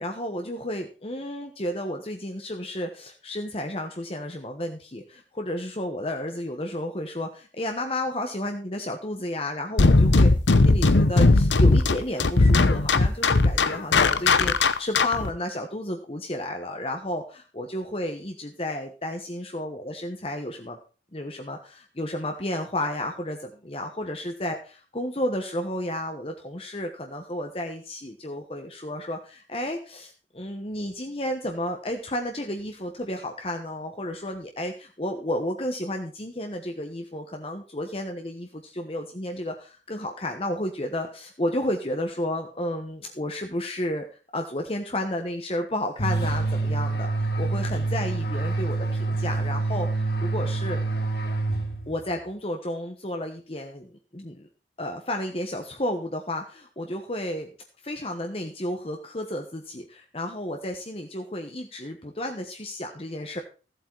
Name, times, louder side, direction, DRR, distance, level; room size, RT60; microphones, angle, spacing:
voice 1, 0.0-10.3 10.6-20.8 21.1-44.0 44.3-50.8 51.9-54.5 54.8-57.5 57.8-63.4, left 1 dB, 30° left, 4 dB, 1.2 m, -32 dB
sound 1, 9.8-15.3, left 3 dB, 85° left, 0.9 m, -18 dB
sound 2, 46.0-52.1, right 3 dB, 60° left, 2.6 m, -27 dB
14.5 x 7.9 x 4.6 m, 0.36 s
head